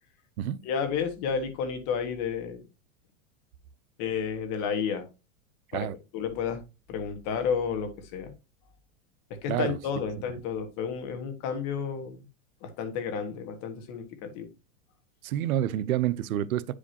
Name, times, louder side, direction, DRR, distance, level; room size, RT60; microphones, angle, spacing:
voice 1, 0.6-2.6 4.0-5.1 5.7-5.9 6.1-6.6 6.9-8.3 9.4-12.2 12.6-14.5, left 6 dB, 45° left, 1.6 m, -31 dB
voice 2, 15.2-16.8, right 12 dB, 90° right, 0.7 m, -28 dB
9.6 x 5.0 x 2.8 m
supercardioid pair, 140°, 41 cm